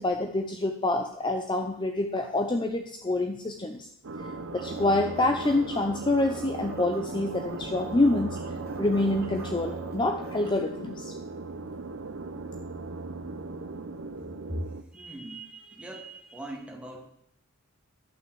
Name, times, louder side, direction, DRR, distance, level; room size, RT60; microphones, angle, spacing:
voice 1, 0.0-3.9 4.5-8.4 8.8-11.1, left 2 dB, 20° left, 5 dB, 0.7 m, -27 dB
sound 1, 4.0-14.8, right 3 dB, 70° right, 0.8 m, -38 dB
sound 2, 4.6-10.5, right 3 dB, 50° right, 2.3 m, -44 dB
voice 2, 14.2-14.7 14.9-17.0, right 1 dB, 5° right, 0 dB, 2.2 m, -39 dB
12.0 x 6.1 x 7.6 m, 0.73 s
head